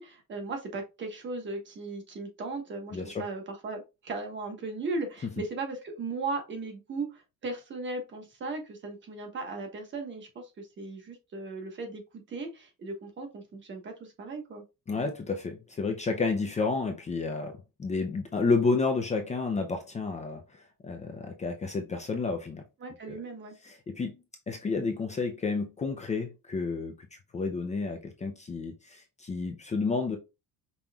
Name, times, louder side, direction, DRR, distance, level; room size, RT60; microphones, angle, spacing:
voice 1, 0.0-14.6 22.8-23.5, right 3 dB, 30° right, 1.2 m, -37 dB
voice 2, 2.9-3.3 14.9-20.4 20.8-22.6 23.1-23.2 23.6-24.2 24.5-30.2, left 4 dB, 20° left, 0.5 m, -31 dB
5.4 x 3.0 x 2.3 m
cardioid pair, 165°, 36 cm